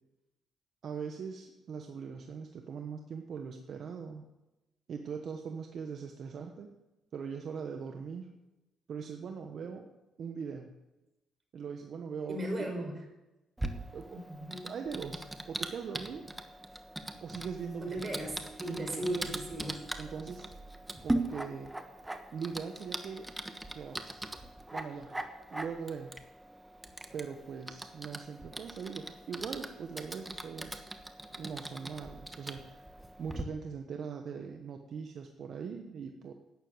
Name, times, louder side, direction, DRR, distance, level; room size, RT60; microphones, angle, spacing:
voice 1, 0.8-4.2 4.9-6.7 7.1-8.3 8.9-9.9 10.2-10.7 11.5-12.4 12.8-12.9 13.9-14.2 14.6-16.3 17.2-18.1 18.7-19.3 20.0-20.5 21.0-21.7 22.3-23.2 23.7-24.3 24.7-25.2 25.5-26.2 27.1-30.9 31.4-32.8 33.2-36.3, right 6 dB, 60° right, 4 dB, 1.2 m, -41 dB
voice 2, 12.3-13.0 14.1-14.7 17.8-19.8, equal, 30° right, 2 dB, 5.1 m, -37 dB
Typing, 13.6-33.4, right 1 dB, 10° right, 1.3 m, -41 dB
12.0 x 9.3 x 7.9 m, 1.0 s
cardioid pair, 90°, 0 cm